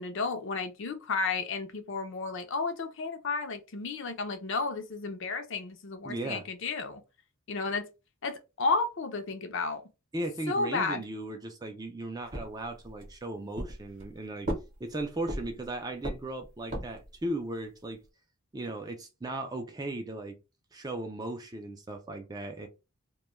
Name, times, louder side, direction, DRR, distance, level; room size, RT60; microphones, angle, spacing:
voice 1, 0.0-7.0 7.5-7.9 8.2-9.8 10.5-11.0, left 4 dB, 55° left, 0.5 m, -32 dB
voice 2, 6.0-6.4 10.1-14.5 14.8-18.0 18.5-20.4 20.7-22.7, right 1 dB, 15° right, 0.3 m, -37 dB
sound 1, 12.3-13.1 13.6-14.1 14.4-15.7 16.0-17.1, right 1 dB, 40° right, 0.8 m, -36 dB
2.2 x 2.1 x 3.0 m
head